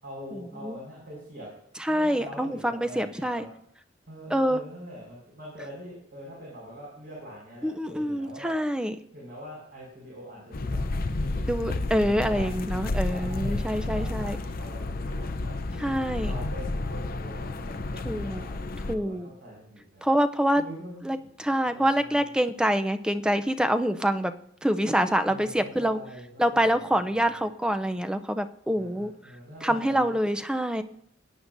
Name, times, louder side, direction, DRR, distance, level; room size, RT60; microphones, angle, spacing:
voice 1, 0.0-1.5 1.8-3.5 4.1-8.5 9.1-10.8 11.1-15.9 16.2-20.0 20.6-22.3 25.3-27.3 28.7-30.2, equal, 55° right, -5 dB, 4.9 m, -44 dB
voice 2, 1.9-3.5 4.3-4.6 7.6-8.9 11.5-14.4 15.8-16.3 18.1-18.4 18.9-19.3 20.0-20.6 21.0-24.3 24.6-26.0 26.4-29.1 29.6-30.8, equal, 5° right, 9 dB, 0.4 m, -26 dB
sound 1, 10.5-19.0, left 2 dB, 50° left, 0.6 m, -31 dB
17.5 x 9.7 x 2.6 m, 0.72 s
head